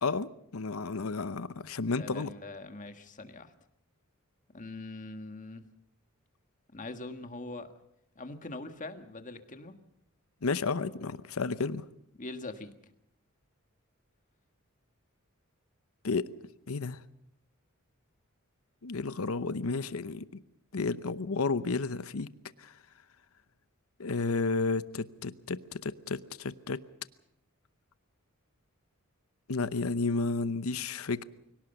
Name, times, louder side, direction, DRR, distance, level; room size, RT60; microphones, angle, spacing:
voice 1, 0.0-2.3 10.4-11.8 16.0-16.3 16.7-17.0 18.8-20.3 20.7-22.3 22.6-22.7 24.0-26.8 29.5-31.2, left 4 dB, 80° left, 0.8 m, -32 dB
voice 2, 2.0-3.5 4.5-5.7 6.7-7.7 8.2-9.7 12.2-12.7, left 2 dB, 35° left, 1.7 m, -42 dB
23.5 x 17.5 x 7.0 m
head